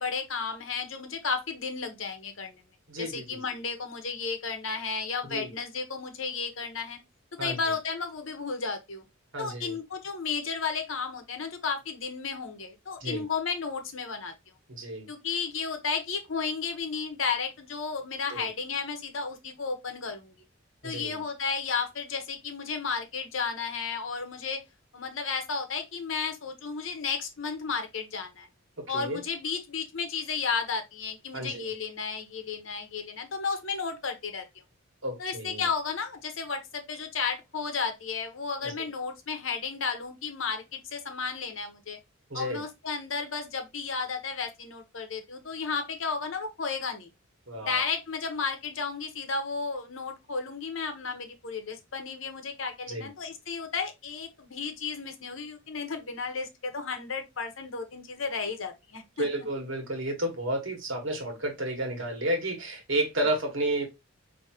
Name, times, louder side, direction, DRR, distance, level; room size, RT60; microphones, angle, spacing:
voice 1, 0.0-2.6 3.0-7.0 7.4-9.0 9.4-14.3 15.1-20.3 20.8-24.6 24.9-28.5 28.9-34.4 35.2-42.0 42.3-47.1 47.6-59.5, left 5 dB, 65° left, 0.9 m, -33 dB
voice 2, 2.9-3.5 5.2-5.5 7.4-7.6 9.3-9.8 13.0-13.2 14.7-15.1 18.3-18.5 20.8-21.2 28.8-29.2 31.3-31.7 35.0-35.7 38.6-38.7 42.3-42.6 47.5-47.8 52.9-53.1 59.2-63.9, right 1 dB, 60° right, 1.3 m, -31 dB
4.8 x 2.8 x 2.8 m
head